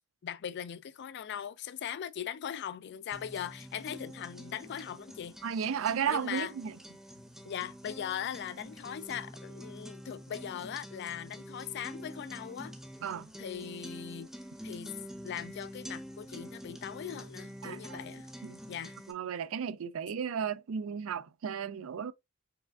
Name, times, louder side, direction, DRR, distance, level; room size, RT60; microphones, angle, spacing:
voice 1, 0.2-5.4 6.1-6.5 7.4-12.8 13.4-14.3 14.6-15.0 15.2-18.3 18.7-18.9, left 9 dB, 55° left, 0.3 m, -40 dB
sound 1, 3.1-19.1, equal, ahead, 0.7 m, -47 dB
voice 2, 5.4-6.7 13.0-13.3 17.6-18.0 18.4-18.6 19.1-22.1, right 7 dB, 70° right, 0.4 m, -34 dB
4.7 x 3.3 x 2.3 m
head